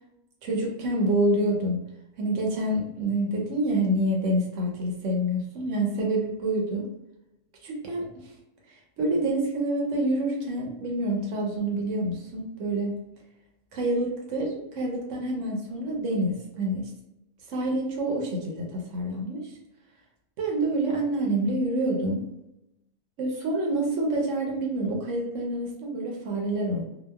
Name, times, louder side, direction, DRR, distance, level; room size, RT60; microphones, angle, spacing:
voice 1, 0.4-1.8 2.2-6.9 7.6-8.2 9.0-13.0 13.7-16.9 17.5-19.4 20.4-22.2 23.2-26.8, right 1 dB, 65° right, -1 dB, 0.9 m, -27 dB
3.0 x 2.0 x 2.2 m, 0.88 s
omnidirectional pair, 1.5 m